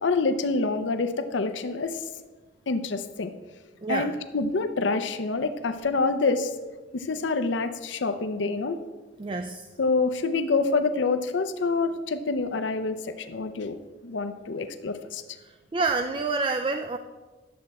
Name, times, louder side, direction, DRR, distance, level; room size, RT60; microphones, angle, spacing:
voice 1, 0.0-2.0 2.7-3.3 3.9-6.5 6.9-8.8 9.8-13.8 14.0-15.2, left 3 dB, 75° left, 9 dB, 0.6 m, -27 dB
voice 2, 3.8-4.1 9.2-9.7 15.4-17.0, right 3 dB, 25° right, 7 dB, 0.3 m, -28 dB
10.5 x 7.5 x 4.2 m, 1.3 s
head